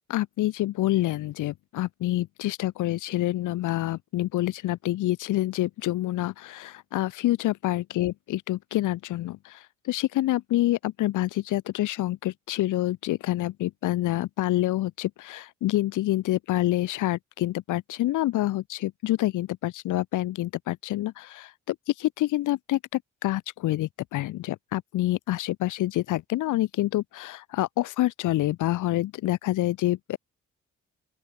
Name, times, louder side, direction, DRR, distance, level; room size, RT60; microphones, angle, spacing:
voice 1, 0.1-30.2, left 15 dB, 85° left, 2.7 m, -27 dB
open air
cardioid pair, 90°, 30 cm